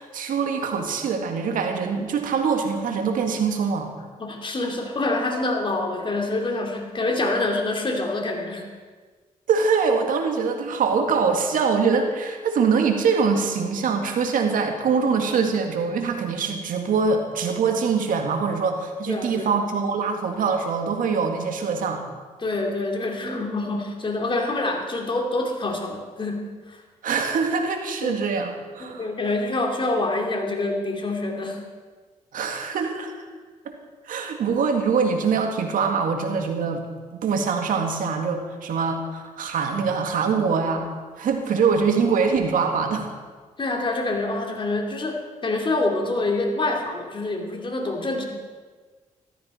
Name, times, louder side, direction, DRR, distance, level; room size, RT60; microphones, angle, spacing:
voice 1, 0.0-3.9 9.5-22.0 27.0-29.1 32.3-33.1 33.7-33.8 34.1-36.8 37.2-40.9 41.2-43.1, right 5 dB, 75° right, 4 dB, 1.9 m, -23 dB
voice 2, 4.2-8.7 19.1-19.5 22.4-26.8 28.0-28.2 28.8-31.6 43.6-48.2, left 2 dB, 35° left, 2 dB, 2.7 m, -26 dB
14.0 x 13.5 x 4.4 m, 1.4 s
cardioid pair, 70°, 14 cm